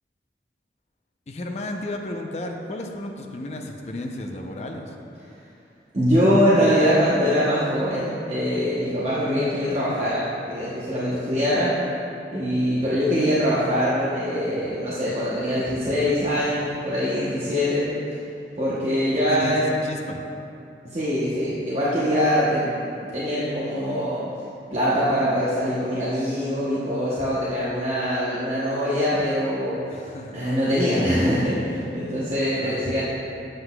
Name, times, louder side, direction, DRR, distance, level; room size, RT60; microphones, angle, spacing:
voice 1, 1.3-5.0 19.3-20.2 29.9-30.4 32.6-32.8, left 1 dB, 40° left, 2 dB, 0.5 m, -33 dB
voice 2, 5.9-11.8 12.3-17.9 18.6-19.7 20.8-22.8 23.1-24.2 24.7-33.0, equal, 35° right, -9 dB, 0.8 m, -23 dB
7.7 x 7.6 x 2.2 m, 2.6 s
head